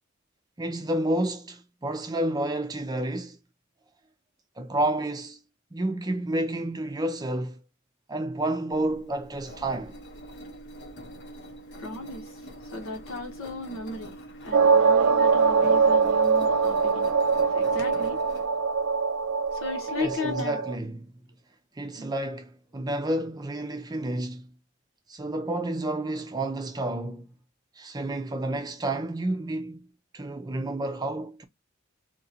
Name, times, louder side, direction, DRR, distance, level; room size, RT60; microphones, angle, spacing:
voice 1, 0.6-3.4 4.6-5.4 5.7-7.6 8.1-10.0 20.0-21.1 21.8-24.5 25.1-27.3 27.8-29.8 30.1-31.4, right 1 dB, 20° right, 0.5 m, -30 dB
Engine, 8.7-20.4, equal, 55° left, 0.8 m, -44 dB
voice 2, 11.7-14.1 14.4-17.1 17.5-18.2 19.5-20.6 22.0-22.1, left 3 dB, 80° left, 1.3 m, -36 dB
sound 1, 14.5-20.7, right 5 dB, 75° right, 0.3 m, -22 dB
2.9 x 2.6 x 4.1 m
head